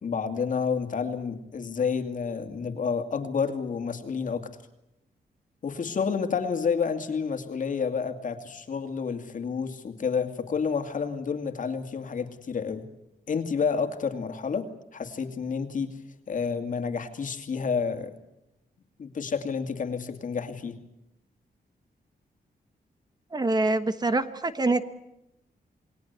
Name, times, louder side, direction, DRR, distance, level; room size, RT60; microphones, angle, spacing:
voice 1, 0.0-4.5 5.6-12.9 13.3-16.0 16.3-18.1 19.0-20.8, left 6 dB, 55° left, 7 dB, 2.5 m, -29 dB
voice 2, 23.3-24.9, right 2 dB, 25° right, 11 dB, 1.2 m, -25 dB
28.0 x 21.0 x 8.2 m, 0.85 s
wide cardioid pair, 170°, 16 cm